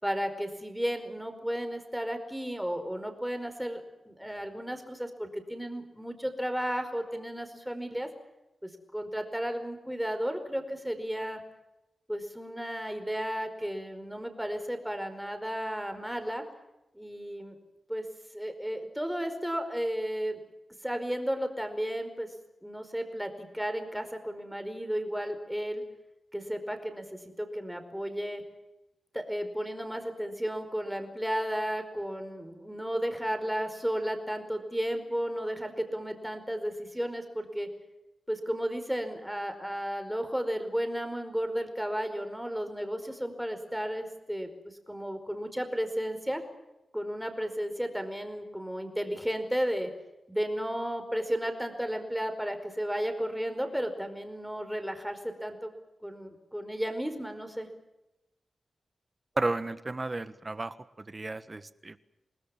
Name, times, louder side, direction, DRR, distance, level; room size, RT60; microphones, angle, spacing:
voice 1, 0.0-3.8 4.1-8.1 8.6-11.4 12.1-16.4 16.9-17.6 17.9-18.0 18.3-20.4 20.8-22.3 22.6-25.8 26.3-28.4 29.1-37.7 38.3-46.4 46.9-49.9 50.3-55.7 56.0-57.7, equal, 5° right, 7 dB, 4.8 m, -33 dB
voice 2, 59.4-60.8 61.1-62.0, right 2 dB, 30° right, 13 dB, 1.5 m, -33 dB
27.5 x 20.0 x 7.4 m, 0.95 s
wide cardioid pair, 90°, 0 cm